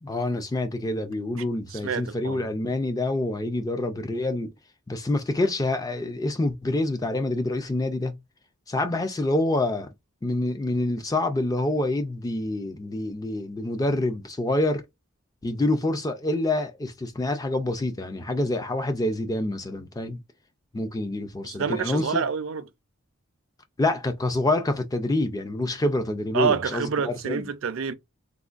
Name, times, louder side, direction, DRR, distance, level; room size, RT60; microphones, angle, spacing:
voice 1, 0.0-4.5 4.9-8.1 8.7-9.9 10.2-14.8 15.4-20.2 20.7-22.2 23.8-27.5, left 2 dB, 15° left, 0.3 m, -27 dB
voice 2, 1.7-2.5 21.4-22.6 26.3-27.9, right 6 dB, 70° right, 0.4 m, -27 dB
3.5 x 2.2 x 2.4 m
head